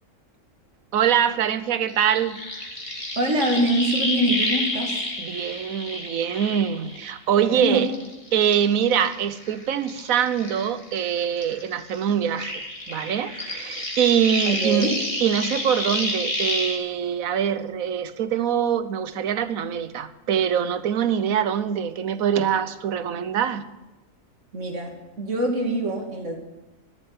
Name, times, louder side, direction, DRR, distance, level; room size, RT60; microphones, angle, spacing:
voice 1, 0.9-2.4 5.2-7.9 8.3-12.5 12.9-14.9 15.2-23.6, right 8 dB, 85° right, 13 dB, 1.3 m, -24 dB
sound 1, 1.9-7.4 7.8-11.1 11.4-16.8, left 1 dB, 25° left, 2.5 m, -30 dB
voice 2, 3.2-4.9 7.4-7.9 14.5-14.9 24.5-26.4, right 1 dB, 60° right, 2 dB, 2.6 m, -24 dB
13.5 x 7.7 x 9.5 m, 1.0 s
omnidirectional pair, 1.4 m